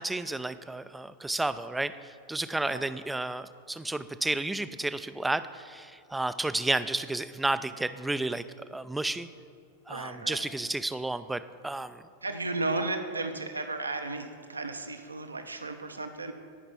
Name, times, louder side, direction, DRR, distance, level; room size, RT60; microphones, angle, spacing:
voice 1, 0.0-8.4 8.7-9.3 9.9-12.0, right 2 dB, 5° right, 13 dB, 0.4 m, -32 dB
voice 2, 9.9-10.5 12.2-16.3, right 2 dB, 80° right, 7 dB, 0.8 m, -34 dB
17.5 x 6.0 x 4.3 m, 2.1 s
figure-of-eight pair, 90°, 0 cm